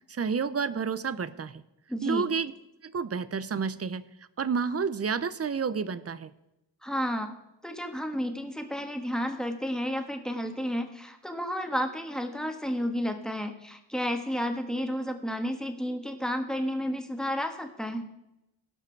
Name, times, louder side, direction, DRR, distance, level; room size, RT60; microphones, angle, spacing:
voice 1, 0.0-1.6 2.0-2.5 2.8-4.0 4.4-6.3, right 6 dB, 35° right, 16 dB, 0.6 m, -30 dB
voice 2, 1.9-2.3 6.8-7.3 7.6-18.1, equal, ahead, 5 dB, 1.4 m, -31 dB
17.5 x 5.8 x 4.6 m, 0.90 s
cardioid pair, 70°, 44 cm